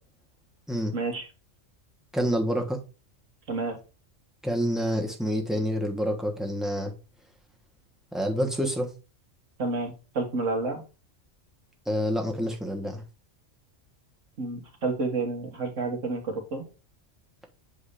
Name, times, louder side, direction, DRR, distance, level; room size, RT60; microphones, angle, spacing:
voice 1, 0.9-1.3 3.5-3.8 9.6-10.8 14.4-16.7, right 3 dB, 75° right, 1.8 m, -30 dB
voice 2, 2.1-2.8 4.4-6.9 8.1-8.9 11.9-13.0, equal, ahead, 1.1 m, -27 dB
8.0 x 2.8 x 5.0 m
omnidirectional pair, 1.3 m